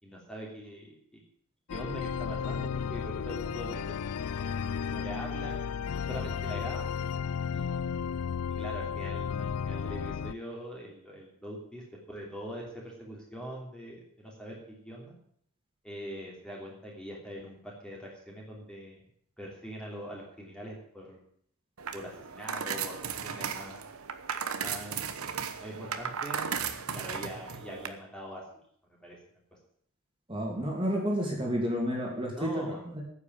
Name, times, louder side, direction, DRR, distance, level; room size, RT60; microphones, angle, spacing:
voice 1, 0.0-1.2 1.7-4.1 4.3-5.6 5.9-6.9 7.5-8.0 8.5-15.1 15.8-19.0 19.4-21.2 21.9-23.9 24.5-25.1 25.6-28.6 28.9-29.2 32.4-32.8, equal, 5° left, -2 dB, 3.0 m, -43 dB
sound 1, 1.7-10.3, left 7 dB, 85° left, 0.4 m, -33 dB
sound 2, 21.8-27.9, right 7 dB, 80° right, 1.1 m, -36 dB
voice 2, 30.3-32.7 32.9-33.0, equal, 25° right, -1 dB, 2.8 m, -30 dB
9.8 x 8.4 x 9.2 m, 0.64 s
head